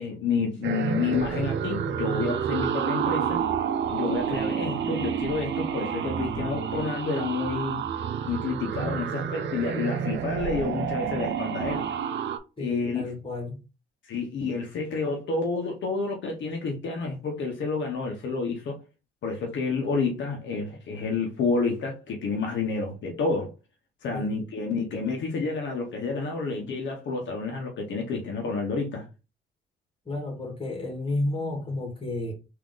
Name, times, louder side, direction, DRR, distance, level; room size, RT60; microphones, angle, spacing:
voice 1, 0.0-3.4 3.9-7.8 8.3-11.9 12.6-13.0 14.0-18.8 19.2-23.5 24.0-29.1, left 4 dB, 70° left, 1.0 m, -29 dB
sound 1, 0.6-12.4, right 8 dB, 65° right, 0.6 m, -29 dB
voice 2, 12.6-13.6 24.1-24.4 30.0-32.3, left 2 dB, 25° left, 1.8 m, -31 dB
3.7 x 2.8 x 3.8 m
cardioid pair, 90°, 20 cm